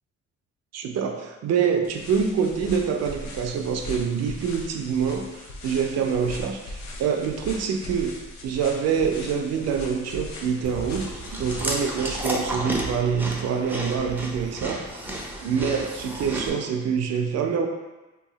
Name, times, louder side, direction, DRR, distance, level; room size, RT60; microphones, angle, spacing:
voice 1, 0.7-8.2 8.4-11.1 11.4-14.8 15.4-17.7, right 6 dB, 60° right, 4 dB, 0.4 m, -26 dB
sound 1, 1.8-12.5, left 1 dB, 70° left, 0.6 m, -40 dB
Chewing mastication, 10.6-16.5, right 1 dB, 5° right, 0.5 m, -32 dB
2.8 x 2.3 x 3.9 m, 1.1 s
cardioid pair, 90°, 30 cm